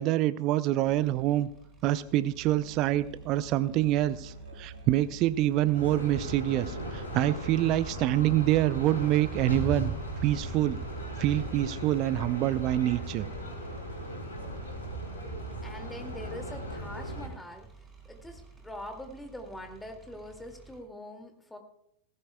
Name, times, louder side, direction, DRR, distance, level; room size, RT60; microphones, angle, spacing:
voice 1, 0.0-1.5 1.8-9.9 10.2-10.8 11.2-13.3, right 14 dB, 40° right, 16 dB, 0.5 m, -26 dB
sound 1, 0.8-20.8, right 2 dB, 20° right, 4.4 m, -54 dB
Musical instrument, 2.3-17.1, right 2 dB, 80° right, 2.2 m, -47 dB
sound 2, 5.7-17.3, right 1 dB, 75° left, 4.1 m, -37 dB
voice 2, 15.6-17.7 18.1-21.6, left 1 dB, 5° left, 4 dB, 2.3 m, -43 dB
18.0 x 15.5 x 2.3 m, 0.74 s
figure-of-eight pair, 90°, 0 cm